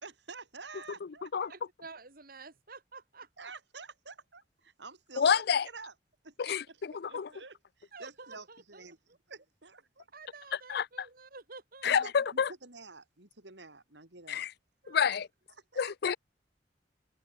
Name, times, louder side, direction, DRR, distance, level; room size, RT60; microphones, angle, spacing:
voice 1, 0.0-1.6 3.4-5.9 6.2-9.0 9.3-10.1 11.8-14.5 15.1-15.2 15.7-15.8, right 4 dB, 80° right, 4.8 m, -49 dB
voice 2, 1.5-3.5 7.9-9.2 10.1-12.1 14.3-14.4 14.8-15.2, right 4 dB, 55° right, 3.6 m, -51 dB
voice 3, 5.2-5.7 6.4-6.6 7.0-7.3 10.7-10.9 11.8-12.5 14.3-14.5 14.9-15.3 15.8-16.2, left 7 dB, 65° left, 0.4 m, -28 dB
head